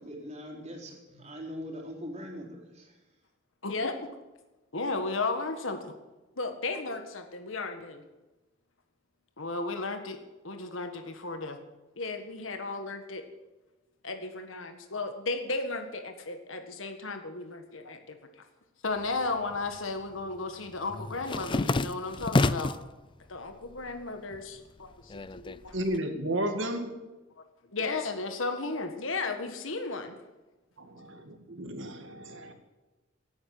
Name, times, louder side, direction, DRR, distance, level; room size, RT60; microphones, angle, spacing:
voice 1, 0.0-2.9, equal, 35° right, 0 dB, 3.9 m, -41 dB
voice 2, 3.6-4.1 4.7-5.9 6.4-8.0 9.4-10.2 10.4-11.6 12.0-13.2 14.0-18.2 18.8-22.7 23.3-25.7 27.4-27.5 27.7-30.1, left 3 dB, 80° left, 6 dB, 1.7 m, -34 dB
sound 1, 19.0-19.8 20.1-22.9 23.4-24.0 24.3-26.0, left 2 dB, 25° left, 0.4 m, -30 dB
voice 3, 25.7-26.9 30.8-32.5, right 1 dB, 65° right, 6 dB, 2.3 m, -33 dB
17.0 x 8.9 x 9.6 m, 1.1 s
head